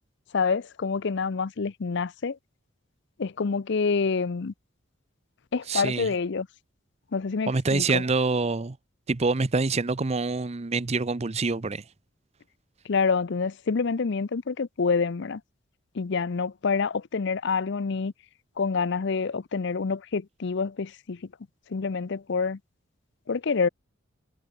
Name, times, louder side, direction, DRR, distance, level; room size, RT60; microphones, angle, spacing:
voice 1, 0.3-2.4 3.2-4.5 5.5-6.5 7.1-8.0 12.8-15.4 15.9-18.1 18.6-21.2 21.7-22.6 23.3-23.7, left 5 dB, 60° left, 0.6 m, -27 dB
voice 2, 5.7-6.1 7.5-8.8 9.1-11.8, right 3 dB, 30° right, 0.6 m, -26 dB
head